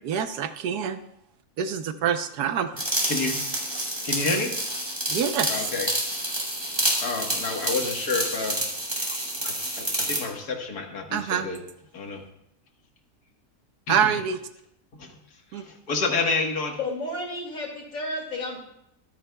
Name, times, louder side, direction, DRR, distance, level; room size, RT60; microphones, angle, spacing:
voice 1, 0.0-1.0 1.6-2.8 5.1-5.5 11.1-11.5 13.9-14.4 15.5-15.6, right 8 dB, 85° right, 9 dB, 1.4 m, -26 dB
sound 1, 2.8-10.3, right 1 dB, 15° right, 2.5 m, -28 dB
voice 2, 3.0-3.4 4.0-4.5 5.5-5.9 7.0-8.6 9.4-11.6 11.9-12.2 13.9-14.1 15.0-15.2 15.5-16.8, left 3 dB, 80° left, 2 dB, 2.1 m, -29 dB
voice 3, 16.8-18.6, left 2 dB, 60° left, 0 dB, 2.8 m, -32 dB
23.5 x 8.8 x 2.3 m, 0.79 s
omnidirectional pair, 1.6 m